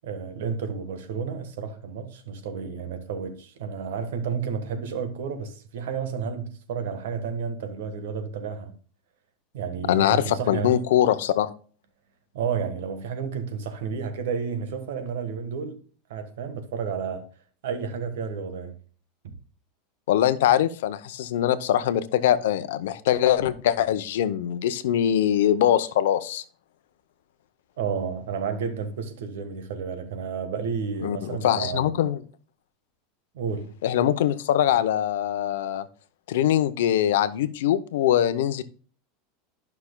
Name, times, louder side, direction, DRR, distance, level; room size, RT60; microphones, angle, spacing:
voice 1, 0.0-8.7 9.5-10.8 12.3-15.8 16.1-17.3 17.6-18.8 19.2-19.3 27.8-31.9 33.3-33.8, right 6 dB, 90° right, 1.3 m, -31 dB
voice 2, 9.9-11.5 20.1-26.4 31.0-31.2 31.4-32.2 33.8-35.9 36.3-38.6, left 11 dB, 85° left, 0.6 m, -22 dB
12.0 x 5.9 x 2.2 m
supercardioid pair, 155°, 0 cm